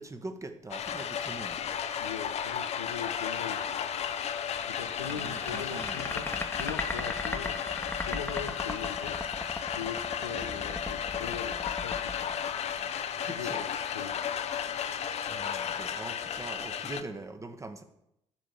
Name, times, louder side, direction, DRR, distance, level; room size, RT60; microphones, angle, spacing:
voice 1, 0.0-1.6 5.0-6.5 13.2-13.6 15.2-17.8, right 2 dB, 20° right, 8 dB, 1.2 m, -43 dB
sound 1, 0.7-17.0, left 8 dB, 45° left, 0.8 m, -34 dB
voice 2, 2.0-3.9 4.7-6.3 6.6-7.6 8.1-9.2 9.7-12.6 13.2-14.5, left 8 dB, 85° left, 11 dB, 0.5 m, -41 dB
sound 2, 4.6-13.2, left 2 dB, 15° left, 1.2 m, -37 dB
10.5 x 5.0 x 7.0 m, 0.82 s
figure-of-eight pair, 50°, 15 cm